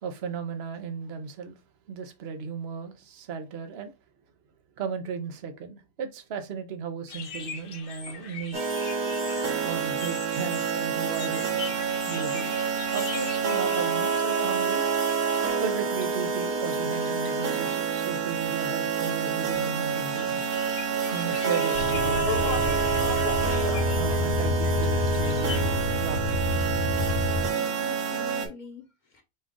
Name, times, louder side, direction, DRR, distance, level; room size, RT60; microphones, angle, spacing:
voice 1, 0.0-1.6 1.9-3.9 4.8-8.7 9.6-11.5 12.1-12.6 12.9-14.9 15.6-20.5 21.1-22.8 23.9-26.4 27.4-27.6, right 5 dB, 55° right, 0.9 m, -35 dB
sound 1, 7.1-25.6, left 5 dB, 55° left, 0.6 m, -43 dB
sound 2, 8.5-28.5, right 6 dB, 85° right, 1.3 m, -28 dB
sound 3, 21.7-27.5, left 3 dB, 70° left, 1.0 m, -28 dB
voice 2, 27.1-29.2, left 7 dB, 35° left, 1.0 m, -45 dB
5.2 x 2.4 x 3.6 m
omnidirectional pair, 1.5 m